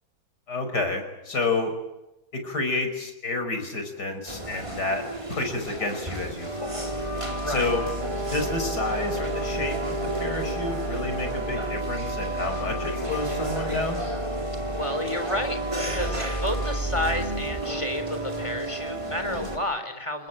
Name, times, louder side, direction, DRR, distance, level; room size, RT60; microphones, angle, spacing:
voice 1, 0.5-1.7 2.3-5.0 5.3-6.8 7.5-7.8 8.3-14.0, left 2 dB, 50° left, 6 dB, 5.8 m, -29 dB
sound 1, 4.3-19.6, right 1 dB, 15° right, 4.2 m, -30 dB
voice 2, 14.7-20.3, left 1 dB, 15° left, 7 dB, 3.7 m, -31 dB
29.0 x 20.5 x 9.2 m, 0.96 s
omnidirectional pair, 2.2 m